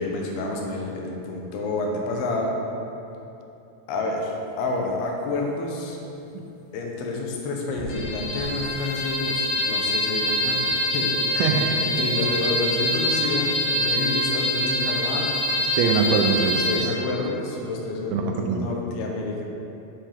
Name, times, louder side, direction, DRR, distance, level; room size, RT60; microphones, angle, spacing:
voice 1, 0.0-2.6 3.9-6.0 6.7-11.4 11.8-15.3 16.6-19.5, left 2 dB, 85° left, 0 dB, 2.9 m, -29 dB
sound 1, 7.8-16.8, left 1 dB, 65° left, 2.8 m, -25 dB
voice 2, 11.4-11.9 15.7-16.9 18.1-18.7, right 5 dB, 85° right, 3 dB, 2.4 m, -23 dB
8.2 x 7.5 x 3.5 m, 2.8 s
omnidirectional pair, 4.5 m